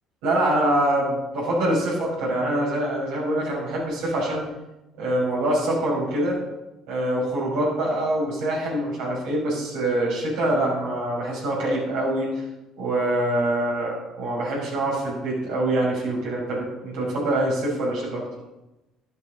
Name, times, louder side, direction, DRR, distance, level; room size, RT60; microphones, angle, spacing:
voice 1, 0.2-4.4 4.9-6.4 6.9-12.4 12.8-18.3, right 1 dB, 80° right, -5 dB, 5.5 m, -24 dB
15.5 x 11.5 x 3.9 m, 0.99 s
supercardioid pair, 75°, 0 cm